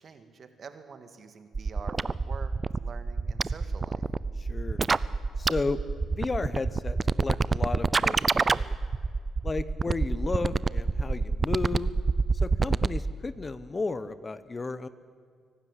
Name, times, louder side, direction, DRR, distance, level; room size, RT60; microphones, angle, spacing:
voice 1, 0.0-2.5 2.8-4.0, right 5 dB, 50° right, 9 dB, 1.9 m, -46 dB
sound 1, 1.5-13.1, right 4 dB, 30° right, 0.5 m, -26 dB
voice 2, 4.4-4.8 5.4-5.8 6.1-8.7 9.4-11.9 12.3-14.9, left 3 dB, 25° left, 15 dB, 0.9 m, -33 dB
23.0 x 12.5 x 9.9 m, 2.1 s
cardioid pair, 90°, 0 cm